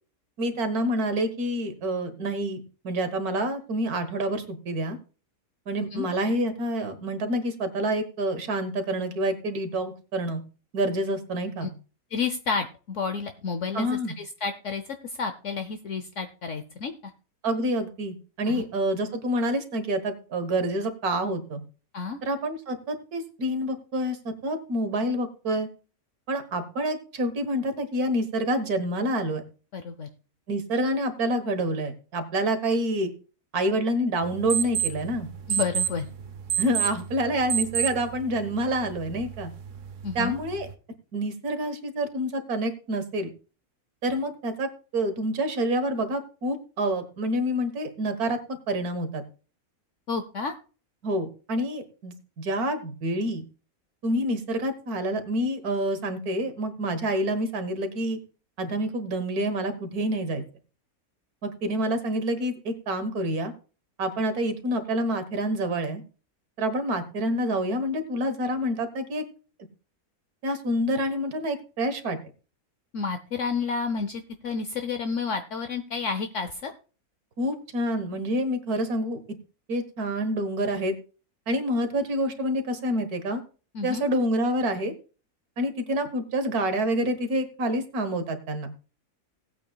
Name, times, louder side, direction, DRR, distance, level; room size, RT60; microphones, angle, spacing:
voice 1, 0.4-5.0 5.7-10.4 10.7-11.7 13.7-14.1 17.4-21.6 22.2-25.7 26.3-29.4 30.5-33.1 33.5-35.3 36.6-39.5 40.2-40.7 41.1-43.3 44.0-44.7 44.9-49.2 51.0-53.4 54.0-58.2 58.6-60.4 61.4-63.5 64.0-66.0 66.6-69.2 70.4-72.2 77.4-79.2 79.7-80.9 81.5-83.4 83.8-84.9 85.6-88.7, right 1 dB, 85° right, 9 dB, 1.9 m, -27 dB
voice 2, 12.1-16.9 18.5-18.6 21.9-22.2 29.7-30.1 35.5-36.1 40.0-40.4 50.1-50.5 72.9-76.7 83.7-84.0, left 5 dB, 60° left, 8 dB, 1.1 m, -30 dB
sound 1, 34.2-40.7, right 9 dB, 60° right, 1.1 m, -31 dB
18.5 x 8.4 x 2.3 m, 0.36 s
omnidirectional pair, 1.5 m